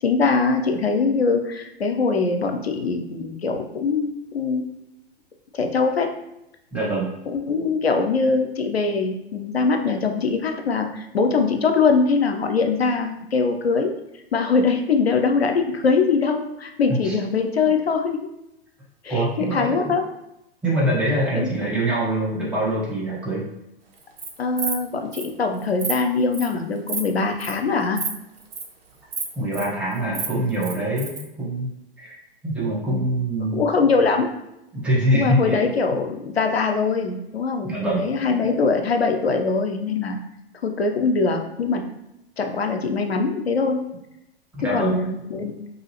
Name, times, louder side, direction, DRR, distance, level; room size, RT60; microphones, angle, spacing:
voice 1, 0.0-4.7 5.5-6.2 7.3-14.0 14.3-18.3 19.0-20.0 21.3-21.5 24.4-28.0 33.5-34.4 35.1-40.2 40.6-41.9 42.4-43.9 44.6-45.6, left 4 dB, 85° left, 5 dB, 0.5 m, -22 dB
voice 2, 6.7-7.1 16.9-17.1 19.1-19.8 20.6-23.4 29.4-31.7 32.0-32.2 32.4-33.6 34.7-35.6 37.6-38.1 44.5-45.0, right 1 dB, 5° right, -6 dB, 0.8 m, -24 dB
Insect, 24.0-24.3 24.6-24.8 25.1-25.2 25.6-25.9 26.3-26.5 26.9-27.1 27.4-27.6 28.0-28.1 28.4-28.6 29.1-29.6 30.0-31.2, right 5 dB, 75° right, 0.6 m, -29 dB
2.7 x 2.4 x 2.8 m, 0.87 s
figure-of-eight pair, 100°, 30 cm